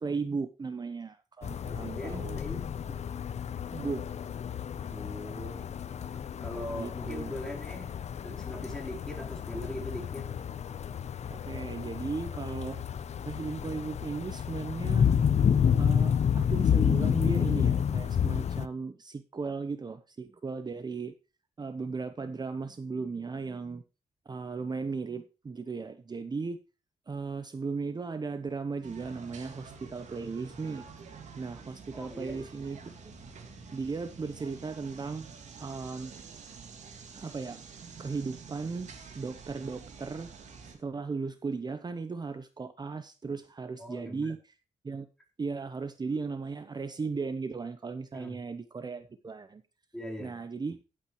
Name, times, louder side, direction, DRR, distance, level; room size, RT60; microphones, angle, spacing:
voice 1, 0.0-2.4 3.7-4.0 6.7-7.3 11.3-12.8 13.3-15.1 15.8-21.1 21.6-23.8 24.3-26.6 27.1-30.9 31.4-33.1 33.7-35.3 35.6-36.1 37.1-37.6 38.0-38.9 39.2-40.3 40.7-44.4 44.8-45.1 45.4-49.6 50.2-50.8, right 4 dB, 35° right, 11 dB, 0.9 m, -36 dB
sound 1, 1.4-18.7, left 8 dB, 65° left, 0.8 m, -30 dB
voice 2, 1.7-3.1 4.9-5.6 6.4-8.0 8.2-10.3 31.9-32.5 43.8-44.3 48.1-48.4 49.9-50.4, left 1 dB, 5° left, 0 dB, 4.2 m, -41 dB
sound 2, 28.8-40.7, right 5 dB, 80° right, 3.1 m, -48 dB
15.5 x 8.8 x 3.2 m, 0.32 s
cardioid pair, 85°, 12 cm